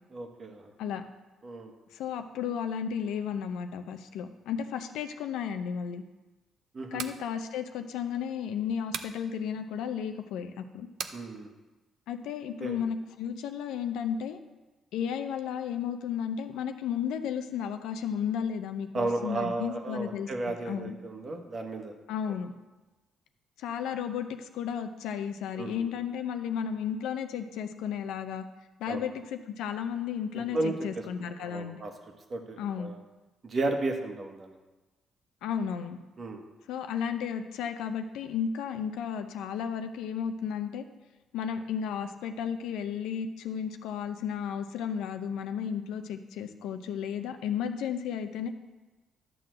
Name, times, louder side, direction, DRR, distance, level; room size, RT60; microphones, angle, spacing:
voice 1, 0.1-0.7 1.4-1.7 6.7-7.0 11.1-11.5 12.6-12.8 18.9-21.9 25.6-25.8 28.9-29.0 30.3-30.9 31.4-31.9 32.3-32.9 33.4-34.6 36.2-36.4, right 2 dB, 40° right, 4 dB, 1.4 m, -33 dB
voice 2, 1.9-6.0 6.9-10.9 12.1-14.4 14.9-20.3 20.6-21.0 22.1-22.5 23.6-28.5 28.8-31.8 32.6-32.9 35.4-36.0 36.7-40.8 41.3-48.5, left 8 dB, 90° left, 8 dB, 0.7 m, -33 dB
sound 1, 6.9-7.2 8.9-9.2 11.0-11.2, right 7 dB, 65° right, 0.5 m, -36 dB
11.5 x 3.9 x 7.7 m, 1.1 s
cardioid pair, 90°, 0 cm